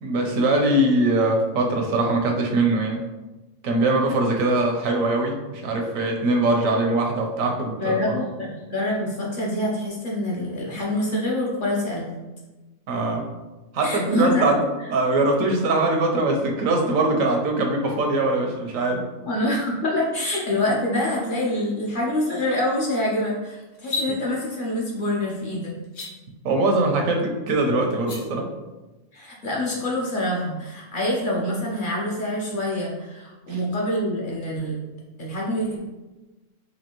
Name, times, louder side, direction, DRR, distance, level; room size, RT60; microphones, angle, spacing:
voice 1, 0.0-3.0 3.6-8.1 12.9-13.2 13.7-14.6 14.9-19.0 26.4-28.5 33.5-33.6, right 2 dB, 85° right, 2 dB, 1.1 m, -22 dB
voice 2, 7.5-12.2 13.8-14.5 19.2-25.7 29.1-34.8 35.2-35.8, left 1 dB, 45° left, -4 dB, 0.8 m, -26 dB
sound 1, 23.7-24.1 25.8-26.1 27.9-28.2, left 3 dB, 75° left, 1.2 m, -29 dB
4.2 x 2.7 x 2.9 m, 1.1 s
omnidirectional pair, 1.4 m